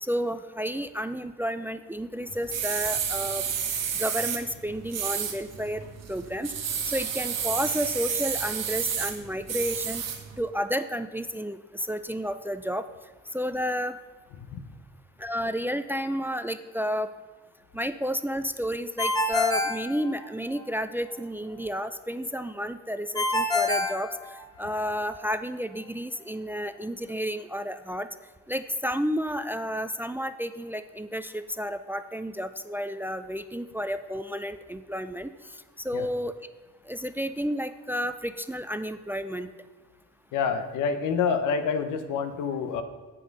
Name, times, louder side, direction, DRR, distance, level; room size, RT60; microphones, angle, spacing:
voice 1, 0.0-3.5 3.9-5.8 6.1-6.5 6.8-10.0 10.4-12.8 13.3-14.0 15.2-17.1 17.7-28.1 28.5-35.3 35.8-36.3 36.9-39.5, equal, 5° right, 11 dB, 0.3 m, -31 dB
sound 1, 2.3-10.4, right 7 dB, 60° right, 1.2 m, -31 dB
Ringtone, 19.0-20.6 23.2-24.8, left 2 dB, 15° left, 1.4 m, -27 dB
voice 2, 40.3-42.8, left 6 dB, 85° left, 8 dB, 0.8 m, -27 dB
8.3 x 5.9 x 5.3 m, 1.3 s
cardioid pair, 90°, 30 cm